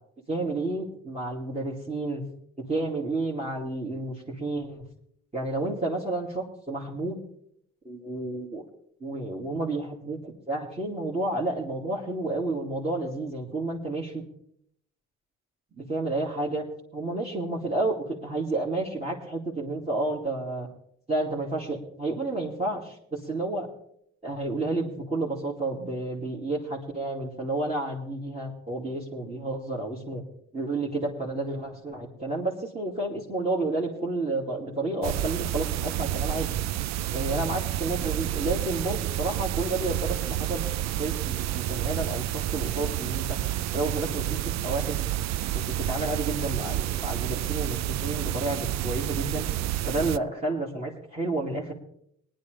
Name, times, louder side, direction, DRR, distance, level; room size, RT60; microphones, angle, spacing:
voice 1, 0.3-2.2 2.7-4.8 5.3-7.2 7.8-8.6 9.0-14.2 15.7-16.6 16.9-20.7 21.1-23.7 24.2-30.2 30.5-36.5 37.1-43.4 43.7-45.0 45.8-49.5 49.9-51.7, right 2 dB, 20° right, -5 dB, 2.4 m, -31 dB
sound 1, 35.0-50.2, right 13 dB, 65° right, 0.4 m, -29 dB
19.0 x 10.5 x 3.3 m, 0.68 s
cardioid pair, 90°, 30 cm